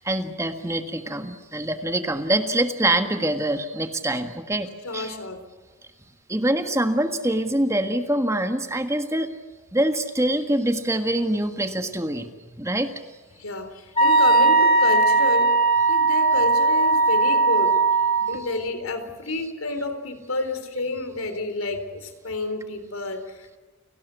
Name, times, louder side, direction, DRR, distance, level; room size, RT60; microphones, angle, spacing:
voice 1, 0.0-5.1 6.3-9.3 9.7-12.9, right 1 dB, 15° right, 7 dB, 1.6 m, -25 dB
voice 2, 4.8-5.4 13.4-15.5 15.9-17.8 18.3-23.6, left 2 dB, 85° left, 10 dB, 3.6 m, -30 dB
Wind instrument woodwind instrument, 14.0-18.4, right 3 dB, 25° left, 2.9 m, -18 dB
30.0 x 19.0 x 8.3 m, 1.3 s
head